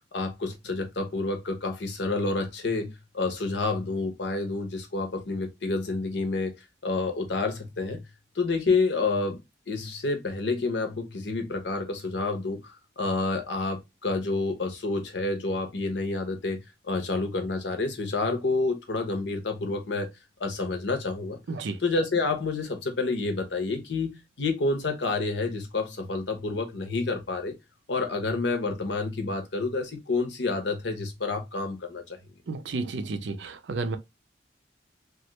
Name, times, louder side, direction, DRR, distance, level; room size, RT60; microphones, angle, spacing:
voice 1, 0.1-6.5 6.8-8.0 8.4-9.4 9.7-16.6 16.9-20.1 20.4-21.4 21.8-27.5 27.9-32.0, left 3 dB, 70° left, 0.8 m, -29 dB
voice 2, 32.5-34.0, right 3 dB, 75° right, 0.5 m, -32 dB
3.0 x 2.4 x 3.0 m
head